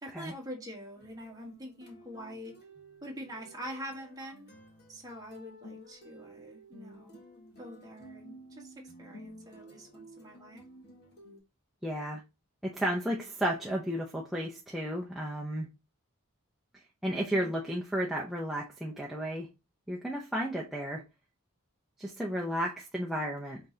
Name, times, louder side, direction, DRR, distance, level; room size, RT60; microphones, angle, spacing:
voice 1, 0.0-2.5 3.0-4.5 4.9-7.1 7.6-10.6 17.1-17.5, equal, 15° right, 1.4 m, -45 dB
sound 1, 0.9-11.4, right 1 dB, 50° left, 1.4 m, -53 dB
voice 2, 11.8-12.2 12.6-15.7 17.0-19.5 19.9-21.0 22.0-23.6, equal, ahead, 0.6 m, -33 dB
5.7 x 3.2 x 2.7 m
head